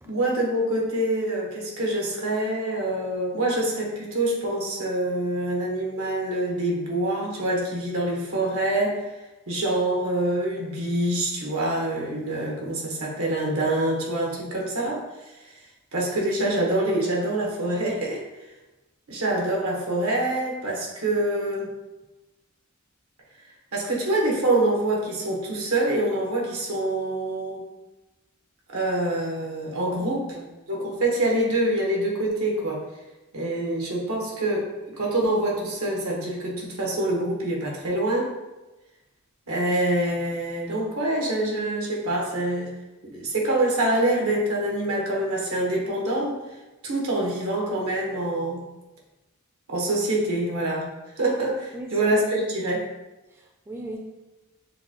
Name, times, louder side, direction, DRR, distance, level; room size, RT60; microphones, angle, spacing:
voice 1, 0.0-9.0 9.5-15.0 15.9-18.2 19.1-21.7 23.7-27.6 28.7-30.2 30.7-32.8 33.3-38.3 39.5-42.7 43.0-46.4 46.8-48.6 49.7-50.9 51.2-52.9, right 1 dB, 85° right, -2 dB, 1.2 m, -25 dB
voice 2, 29.9-30.5 51.7-52.1 53.3-54.0, right 1 dB, 10° right, 0 dB, 0.4 m, -38 dB
6.8 x 2.3 x 2.9 m, 1.1 s
head